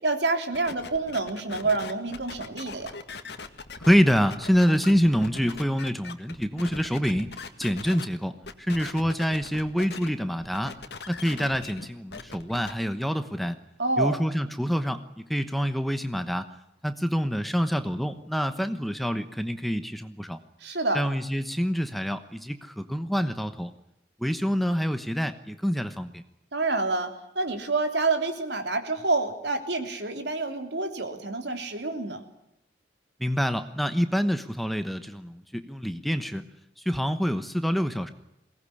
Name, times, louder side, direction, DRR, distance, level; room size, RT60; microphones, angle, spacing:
voice 1, 0.0-2.9 13.8-14.2 20.6-21.0 26.5-27.1 27.3-32.2, right 3 dB, 75° right, 6 dB, 3.3 m, -27 dB
sound 1, 0.5-8.0 8.4-10.1 10.4-12.7, left 4 dB, 70° left, 1.9 m, -40 dB
voice 2, 3.8-7.3 7.6-10.7 11.1-13.6 14.0-16.5 16.8-20.4 20.9-23.7 24.2-26.2 33.2-36.4 36.8-38.1, equal, ahead, 9 dB, 1.0 m, -26 dB
22.0 x 18.5 x 10.0 m, 0.83 s
head